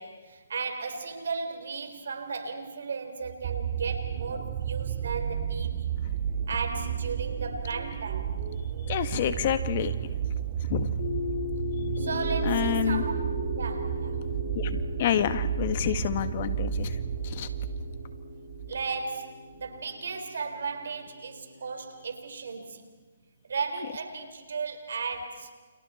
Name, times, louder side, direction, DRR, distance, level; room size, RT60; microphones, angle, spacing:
voice 1, 0.0-5.9 6.5-8.4 12.0-13.1 13.6-14.2 18.7-22.8 23.4-25.5, right 4 dB, 70° right, 6 dB, 4.2 m, -35 dB
sound 1, 3.2-18.8 19.6-19.7, right 8 dB, 45° right, 2.3 m, -32 dB
sound 2, 6.6-9.5 11.0-22.3, left 3 dB, 60° left, 6.1 m, -38 dB
voice 2, 8.9-9.9 10.7-11.0 12.4-13.0 14.5-16.9 17.2-17.5, left 10 dB, 45° left, 10 dB, 1.7 m, -28 dB
29.5 x 29.5 x 4.5 m, 1.4 s
hypercardioid pair, 150°, 0 cm